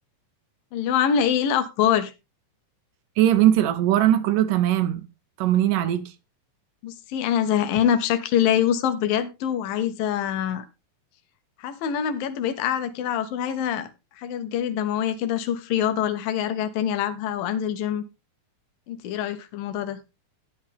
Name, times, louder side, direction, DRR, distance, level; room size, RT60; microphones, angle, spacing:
voice 1, 0.7-2.1 6.8-10.7 11.6-18.0 18.9-20.0, left 9 dB, 85° left, 2.8 m, -25 dB
voice 2, 3.2-5.0 5.4-6.0, right 12 dB, 75° right, 2.4 m, -20 dB
11.5 x 10.0 x 3.4 m
omnidirectional pair, 3.9 m